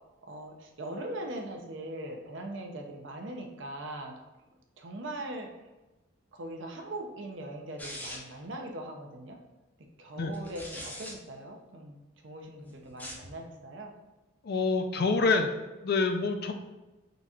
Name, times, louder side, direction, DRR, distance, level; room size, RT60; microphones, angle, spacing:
voice 1, 0.3-4.2 4.8-5.5 6.3-9.4 10.0-12.0 12.2-13.9, right 1 dB, 60° right, 2 dB, 0.6 m, -40 dB
sound 1, 7.8-8.4 10.3-11.1 12.9-13.3, left 1 dB, 10° left, 0.6 m, -41 dB
voice 2, 14.4-15.5 15.8-16.5, left 4 dB, 50° left, 6 dB, 0.4 m, -26 dB
3.9 x 2.4 x 4.2 m, 1.1 s
head